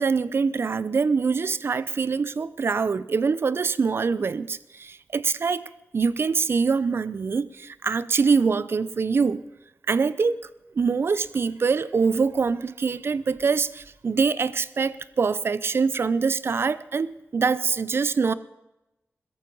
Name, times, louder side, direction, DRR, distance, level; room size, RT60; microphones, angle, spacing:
voice 1, 0.0-9.4 9.9-10.4 10.7-18.3, right 5 dB, 60° right, 0.6 m, -24 dB
17.0 x 13.5 x 5.4 m
wide cardioid pair, 90°, 5 cm